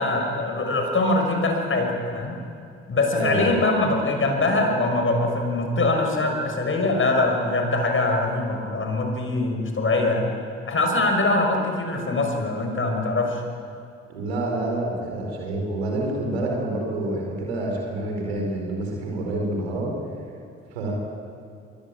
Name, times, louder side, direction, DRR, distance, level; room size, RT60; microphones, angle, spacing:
voice 1, 0.0-2.4 2.9-10.3 10.7-13.4, left 2 dB, 40° left, 3 dB, 6.1 m, -23 dB
voice 2, 3.1-3.5 14.1-19.9 20.7-20.9, right 2 dB, 90° right, 0 dB, 4.6 m, -27 dB
23.0 x 19.0 x 8.9 m, 2.6 s
hypercardioid pair, 45°, 31 cm